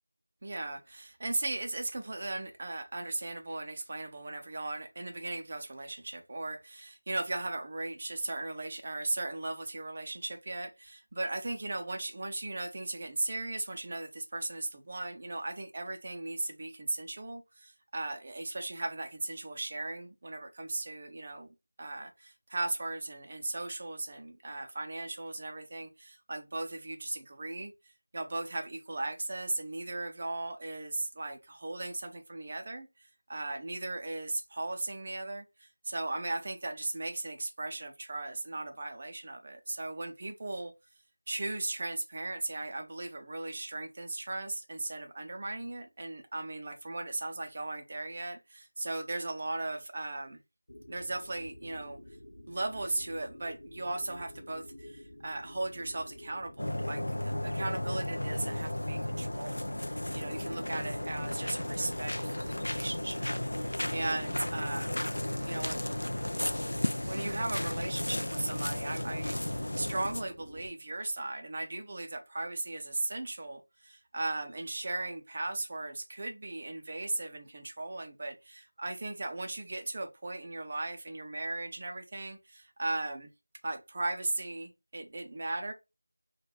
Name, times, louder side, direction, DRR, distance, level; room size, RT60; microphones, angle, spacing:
voice 1, 0.4-27.7 28.1-40.7 41.3-50.4 50.9-52.0 52.5-65.0 65.4-65.8 66.7-83.3 83.6-85.7, right 2 dB, 25° right, 0.4 m, -37 dB
sound 1, 50.7-70.7, left 1 dB, 45° left, 1.0 m, -50 dB
sound 2, 56.6-70.2, left 1 dB, 70° left, 0.3 m, -34 dB
3.3 x 2.2 x 2.4 m
figure-of-eight pair, 175°, 0 cm